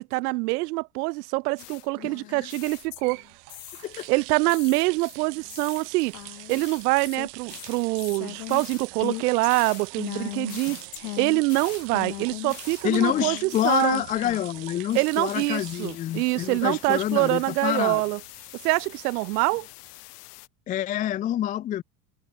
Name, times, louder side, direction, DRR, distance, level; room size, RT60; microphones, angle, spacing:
voice 1, 0.0-3.2 4.1-6.1 6.5-10.8 11.2-14.0 14.9-18.2 18.6-19.7, right 24 dB, 85° right, 1.7 m, -25 dB
sound 1, 1.6-4.1 4.5-14.6 14.9-20.5, left 22 dB, 85° left, 4.1 m, -40 dB
sound 2, 2.7-19.7, right 40 dB or more, 65° right, 7.5 m, -44 dB
voice 2, 12.8-18.0 20.7-21.8, left 12 dB, 20° left, 0.4 m, -27 dB
cardioid pair, 155°, 45 cm